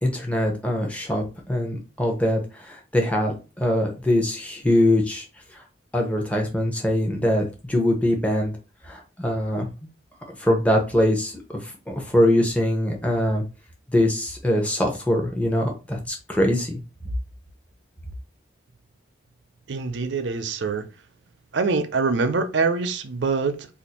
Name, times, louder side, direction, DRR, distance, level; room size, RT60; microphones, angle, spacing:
voice 1, 0.0-5.3 5.9-8.5 8.8-9.7 10.4-11.3 11.6-13.4 13.9-16.8, left 1 dB, 5° left, 0.6 m, -23 dB
voice 2, 19.7-20.8 21.5-23.7, right 4 dB, 70° right, 0.5 m, -24 dB
2.5 x 2.4 x 4.1 m
head